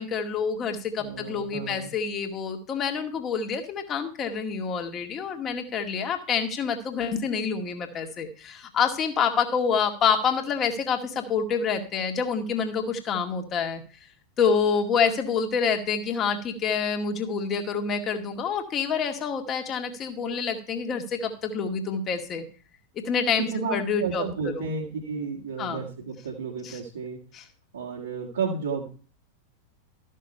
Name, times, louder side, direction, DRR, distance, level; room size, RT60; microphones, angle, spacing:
voice 1, 0.0-13.8 14.4-22.4 23.1-24.2 24.5-24.7 25.6-25.8 26.6-26.8 27.3-27.5, left 6 dB, 30° left, 4 dB, 2.0 m, -27 dB
voice 2, 1.0-1.9 23.4-23.7 24.0-27.2 27.7-28.9, right 5 dB, 70° right, -4 dB, 2.2 m, -32 dB
13.5 x 6.5 x 5.5 m, 0.39 s
figure-of-eight pair, 90°, 0 cm